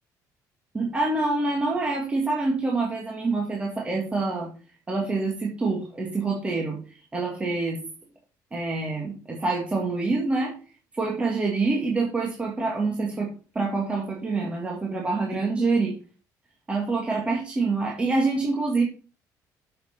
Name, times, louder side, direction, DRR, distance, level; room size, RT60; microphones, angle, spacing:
voice 1, 0.7-4.5 4.9-6.8 7.1-7.8 8.5-10.6 10.9-16.0 16.7-18.9, right 3 dB, 15° right, -1 dB, 1.9 m, -26 dB
7.8 x 7.2 x 4.3 m, 0.36 s
cardioid pair, 165°, 7 cm